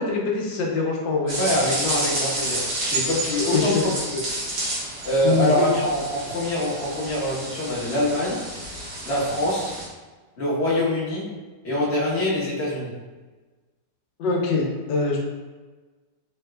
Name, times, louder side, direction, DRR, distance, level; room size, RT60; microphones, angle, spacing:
voice 1, 0.0-1.4 3.5-3.9 5.2-5.7 14.2-15.2, left 4 dB, 85° left, -1 dB, 1.4 m, -24 dB
sound 1, 1.3-9.8, right 1 dB, 75° right, 1.8 m, -30 dB
voice 2, 1.4-3.7 4.1-4.2 5.0-8.4 9.0-9.7 10.4-11.3 11.6-13.0, left 1 dB, 40° left, -6 dB, 1.2 m, -24 dB
4.1 x 3.4 x 2.3 m, 1.3 s
omnidirectional pair, 2.0 m